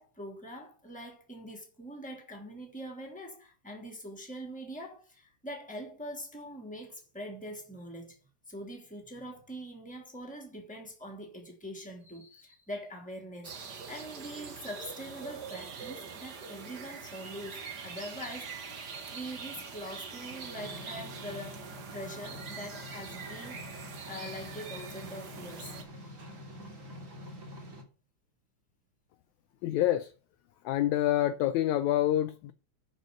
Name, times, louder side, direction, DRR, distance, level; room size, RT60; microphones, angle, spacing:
voice 1, 0.0-8.2 8.5-18.6 19.1-25.7, equal, 5° left, 2.4 m, -43 dB
sound 1, 13.4-25.8, right 5 dB, 50° right, 1.2 m, -44 dB
sound 2, 20.6-27.8, left 1 dB, 25° right, 2.1 m, -46 dB
voice 2, 29.6-30.1 30.6-32.5, left 13 dB, 80° left, 1.7 m, -27 dB
6.6 x 6.5 x 7.6 m
omnidirectional pair, 3.8 m